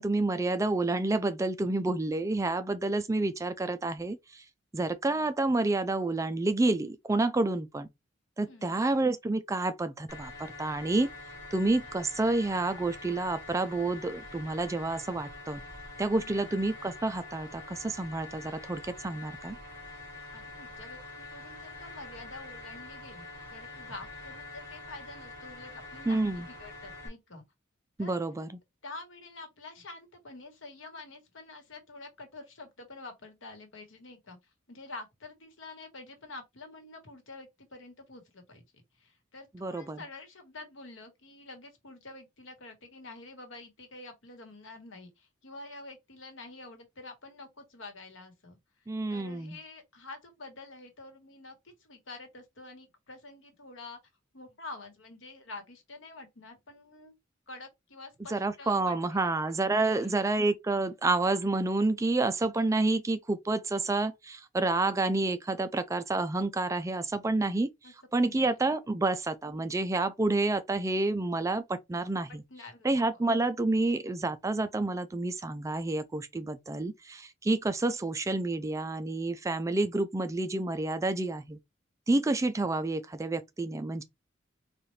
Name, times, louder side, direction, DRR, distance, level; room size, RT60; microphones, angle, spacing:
voice 1, 0.0-4.4 4.7-7.9 8.4-11.1 11.5-15.6 16.0-19.6 26.1-26.5 28.0-28.6 39.5-40.0 48.9-49.6 58.3-67.7 68.1-72.4 72.8-81.6 82.1-84.0, right 2 dB, 15° right, 0.3 m, -29 dB
voice 2, 8.4-8.8 16.2-16.5 20.3-27.4 28.0-28.1 28.8-34.4 34.7-38.6 39.0-48.6 49.1-54.0 54.3-57.1 57.5-59.3 59.8-60.1 67.8-68.5 72.3-73.2, left 2 dB, 80° left, 1.3 m, -47 dB
sound 1, 10.1-27.1, left 3 dB, 15° left, 1.7 m, -45 dB
4.2 x 2.4 x 3.2 m
head